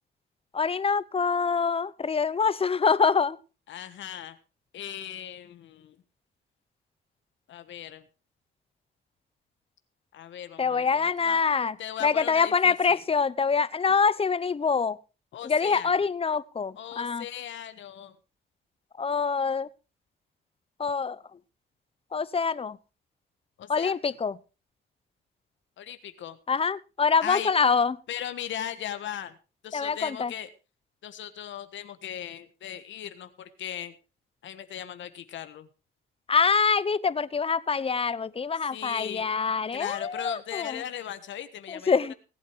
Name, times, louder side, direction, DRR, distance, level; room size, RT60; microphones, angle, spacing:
voice 1, 0.5-3.4 10.6-11.8 12.0-15.0 15.4-17.2 19.0-19.7 20.8-21.2 22.1-22.8 23.7-24.3 26.5-27.9 29.7-30.3 36.3-40.8 41.7-42.1, left 5 dB, 30° left, 17 dB, 0.9 m, -25 dB
voice 2, 3.7-4.4 4.7-6.0 7.5-8.1 10.1-11.4 11.8-13.0 15.3-16.0 16.8-18.2 23.6-24.0 25.8-26.4 27.2-27.5 28.1-29.4 29.6-30.5 31.0-33.9 34.4-35.7 38.6-39.3 39.7-42.1, left 10 dB, 70° left, 11 dB, 1.4 m, -38 dB
19.0 x 8.4 x 4.6 m, 0.33 s
cardioid pair, 90°, 20 cm